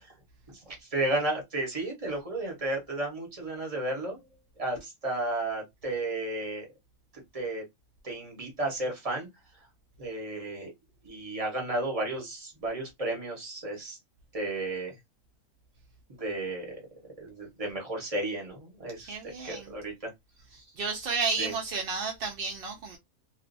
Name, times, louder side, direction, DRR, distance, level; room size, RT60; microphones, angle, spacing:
voice 1, 0.5-4.2 4.6-6.7 7.3-7.6 8.0-9.3 10.0-10.7 11.0-14.0 14.3-15.0 16.2-16.8 17.2-19.1 19.4-20.1 20.5-20.6 21.4-21.5, right 2 dB, 30° right, 1.0 m, -33 dB
voice 2, 19.1-19.7 20.8-23.0, right 4 dB, 70° right, 0.5 m, -32 dB
2.5 x 2.3 x 2.5 m
omnidirectional pair, 1.5 m